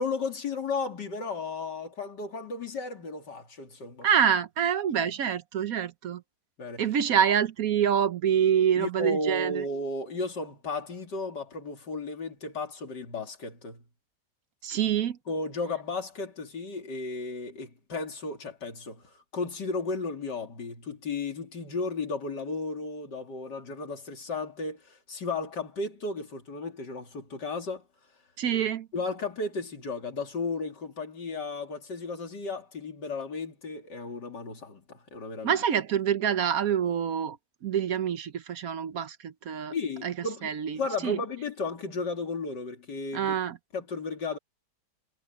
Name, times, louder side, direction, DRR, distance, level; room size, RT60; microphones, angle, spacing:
voice 1, 0.0-4.1 6.6-6.8 8.8-13.8 15.3-19.0 19.3-27.8 28.9-35.6 39.7-40.5 40.8-43.3 43.7-44.4, left 3 dB, 85° left, 3.4 m, -34 dB
voice 2, 4.0-6.2 6.8-9.6 14.6-15.2 28.4-28.9 35.4-37.4 37.6-39.7 40.0-40.1 40.4-41.2 43.1-43.6, right 8 dB, 60° right, 1.2 m, -26 dB
omnidirectional pair, 1.8 m